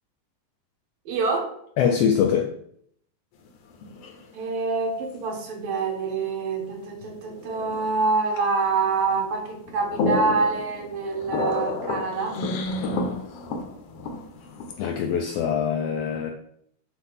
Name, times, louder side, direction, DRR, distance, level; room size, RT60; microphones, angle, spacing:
voice 1, 1.1-1.5 4.3-12.4, right 4 dB, 80° right, 2.6 m, -26 dB
voice 2, 1.8-2.5 14.8-16.3, left 7 dB, 80° left, 1.4 m, -23 dB
sound 1, 3.5-4.2 5.1-5.2 7.0-8.0 8.3-8.5 9.0-9.4 9.6-15.3, left 3 dB, 65° left, 1.6 m, -30 dB
8.0 x 2.7 x 5.5 m
omnidirectional pair, 3.3 m